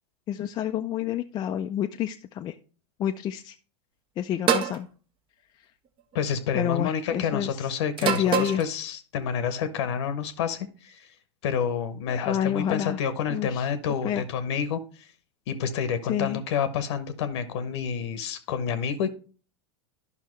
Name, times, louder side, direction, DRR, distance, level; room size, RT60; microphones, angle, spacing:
voice 1, 0.3-2.5 3.0-3.5 4.2-4.9 6.5-7.6 8.0-8.6 12.3-13.0 13.3-13.7 14.0-14.2 16.1-16.4, left 10 dB, 30° left, 5 dB, 0.4 m, -28 dB
sound 1, 4.5-4.8 6.0-6.3 8.0-8.7, right 8 dB, 35° right, 0.8 m, -25 dB
voice 2, 6.1-11.1 11.4-15.1 15.5-19.1, left 7 dB, 70° left, 11 dB, 0.9 m, -29 dB
11.0 x 5.6 x 3.1 m, 0.39 s
hypercardioid pair, 115°, 15 cm